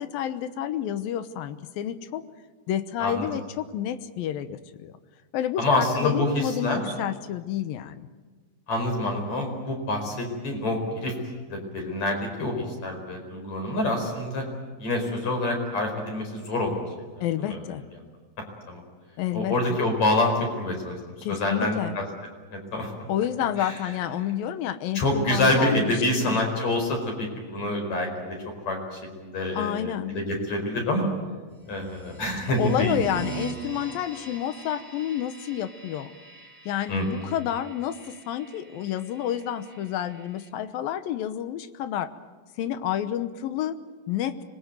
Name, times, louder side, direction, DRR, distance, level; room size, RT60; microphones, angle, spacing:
voice 1, 0.0-2.2 2.7-4.9 5.3-8.1 17.2-17.8 19.2-19.8 21.2-22.0 23.1-26.4 29.5-30.2 32.6-36.2 36.7-42.1 42.6-43.8 44.1-44.4, left 10 dB, 90° left, 12 dB, 2.8 m, -29 dB
voice 2, 5.6-6.8 8.7-11.1 11.5-14.4 14.8-16.8 17.4-17.6 18.7-18.8 19.3-20.9 21.3-22.0 22.5-22.9 23.6-23.8 24.9-28.1 28.7-31.1 31.7-33.0 36.9-37.2, left 1 dB, 50° left, 3 dB, 5.9 m, -26 dB
sound 1, 31.7-40.5, right 3 dB, 5° left, 3.9 m, -42 dB
25.5 x 20.5 x 9.3 m, 1.4 s
omnidirectional pair, 4.0 m